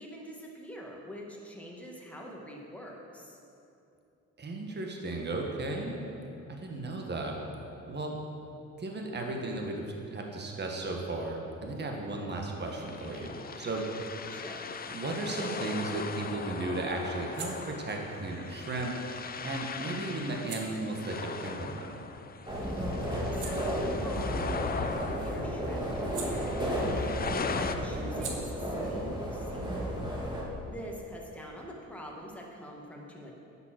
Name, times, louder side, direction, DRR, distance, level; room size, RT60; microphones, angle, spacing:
voice 1, 0.0-3.4 12.5-12.7 14.3-14.6 23.3-30.0 30.7-33.3, equal, 5° left, -2 dB, 1.8 m, -45 dB
voice 2, 4.4-6.0 6.5-7.3 7.9-8.2 8.8-13.9 14.9-22.0, right 2 dB, 35° right, 1 dB, 1.5 m, -35 dB
sound 1, 12.6-27.8, left 6 dB, 30° left, 0.5 m, -39 dB
sound 2, 17.2-22.4 22.8-27.1 27.3-30.7, right 5 dB, 80° right, 1.4 m, -49 dB
sound 3, 22.5-30.4, equal, 15° right, 2.2 m, -33 dB
9.6 x 7.2 x 6.0 m, 2.7 s
cardioid pair, 90°, 30 cm